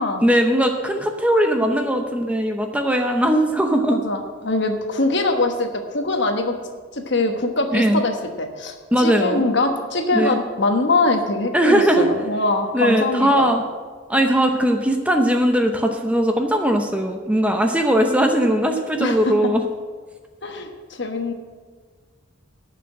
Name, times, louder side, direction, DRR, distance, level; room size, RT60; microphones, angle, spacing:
voice 1, 0.2-4.0 7.7-8.0 8.9-9.4 10.1-10.4 11.5-12.1 12.7-13.6 14.1-19.6, equal, 5° right, 4 dB, 0.7 m, -19 dB
voice 2, 3.9-6.5 6.9-13.5 19.0-19.3 20.4-21.3, left 2 dB, 55° left, 5 dB, 1.2 m, -23 dB
11.0 x 6.0 x 8.6 m, 1.5 s
head